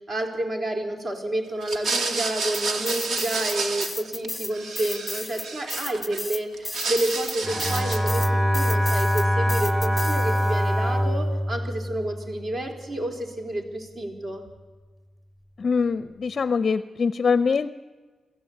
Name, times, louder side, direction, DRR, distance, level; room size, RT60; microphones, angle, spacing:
voice 1, 0.1-14.4, right 1 dB, 40° right, 2 dB, 4.1 m, -30 dB
sound 1, 1.6-4.3 4.5-6.2 6.5-8.2, right 3 dB, 70° right, 2.3 m, -30 dB
sound 2, 2.5-3.6 3.8-10.6, left 2 dB, 10° left, 1.4 m, -34 dB
Bowed string instrument, 7.4-12.7, equal, 15° right, 2.2 m, -24 dB
voice 2, 15.6-17.7, left 5 dB, 45° left, 13 dB, 0.6 m, -23 dB
26.5 x 14.5 x 8.6 m, 1.3 s
cardioid pair, 105°, 0 cm